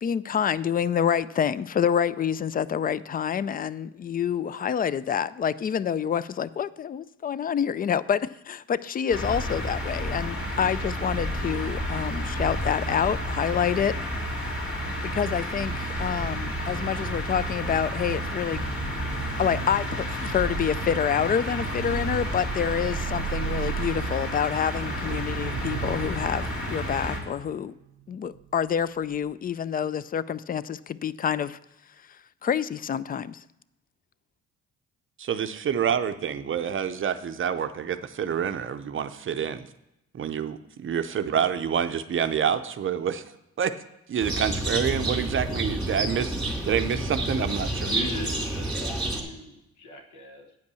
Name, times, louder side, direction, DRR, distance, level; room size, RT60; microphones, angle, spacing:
voice 1, 0.0-13.9 15.0-18.6 19.4-27.7 28.1-31.6 32.4-33.4, left 8 dB, 30° left, 18 dB, 0.3 m, -27 dB
sound 1, 9.1-27.2, equal, 45° left, 2.6 m, -31 dB
sound 2, 18.5-28.7 29.0-29.3, right 12 dB, 90° right, 0.5 m, -37 dB
voice 2, 35.2-39.7 40.2-43.2 43.6-43.7 44.1-47.9, right 8 dB, 40° right, 10 dB, 0.6 m, -27 dB
sound 3, 44.2-49.2, right 1 dB, ahead, 2.5 m, -29 dB
voice 3, 47.8-50.6, left 1 dB, 75° left, 3 dB, 1.5 m, -39 dB
9.2 x 5.3 x 6.8 m, 0.86 s
cardioid pair, 90°, 30 cm